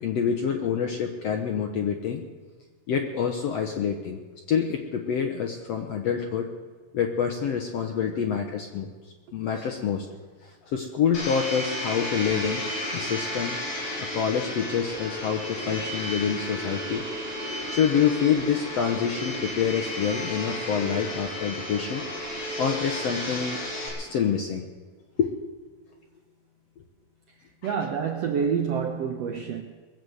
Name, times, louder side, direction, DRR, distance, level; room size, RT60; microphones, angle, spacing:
voice 1, 0.0-2.2 2.9-4.2 4.5-6.5 6.9-8.9 9.3-10.1 10.4-12.6 12.9-13.6 14.0-17.0 17.7-22.0 22.6-23.6 24.0-24.7 25.2-25.3 27.6-27.7, left 7 dB, 70° left, 1.6 m, -27 dB
Domestic sounds home sounds, 11.1-23.9, left 1 dB, 40° left, 4.8 m, -33 dB
voice 2, 27.6-29.6, right 6 dB, 75° right, 1.5 m, -27 dB
21.0 x 7.9 x 7.9 m
omnidirectional pair, 4.0 m